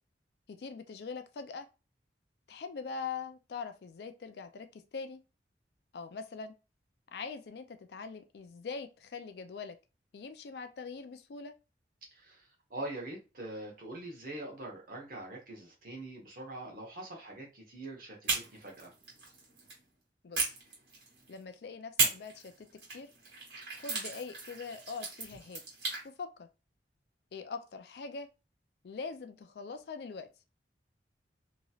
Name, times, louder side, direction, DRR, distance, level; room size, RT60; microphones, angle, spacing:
voice 1, 0.5-1.7 2.5-5.2 5.9-6.5 7.1-9.8 10.1-11.5 20.2-20.5 21.3-23.1 23.8-25.6 26.0-26.5 27.3-28.3 28.8-30.3, left 5 dB, 65° left, 0.4 m, -42 dB
voice 2, 12.1-18.9, right 2 dB, 50° right, 1.1 m, -43 dB
sound 1, 18.2-19.8 20.3-21.4 22.0-26.0, right 4 dB, 75° right, 1.6 m, -36 dB
3.0 x 2.8 x 2.3 m
head